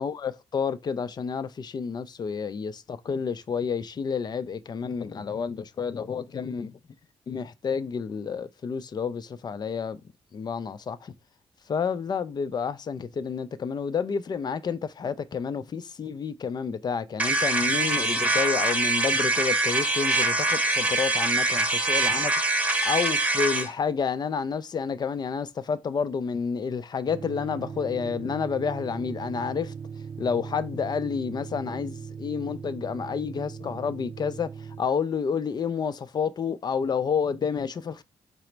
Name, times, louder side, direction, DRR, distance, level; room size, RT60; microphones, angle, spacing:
voice 1, 0.0-6.7 7.3-10.0 10.3-11.1 11.7-29.7 30.2-38.0, left 6 dB, 40° left, 0.3 m, -30 dB
sound 1, 17.2-23.7, right 2 dB, 10° right, 0.8 m, -24 dB
sound 2, 27.1-34.8, right 6 dB, 35° right, 0.4 m, -39 dB
3.9 x 2.0 x 4.4 m
cardioid pair, 100°, 11 cm